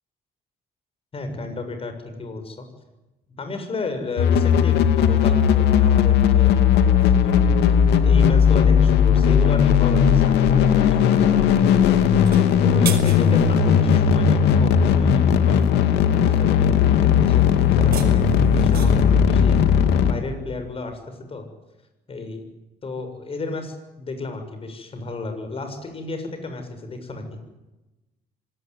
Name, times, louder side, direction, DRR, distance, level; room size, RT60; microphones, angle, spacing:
voice 1, 1.1-2.7 3.4-11.9 12.6-15.7 16.2-17.5 17.8-19.6 20.1-21.5 22.1-22.4 22.8-27.4, left 3 dB, 35° left, 7 dB, 7.1 m, -33 dB
sound 1, 4.2-20.1, left 8 dB, 85° left, 2.7 m, -17 dB
sound 2, 12.1-13.7 17.6-19.1, right 9 dB, 65° right, 5.4 m, -34 dB
25.5 x 19.0 x 9.6 m, 1.0 s
cardioid pair, 110°, 17 cm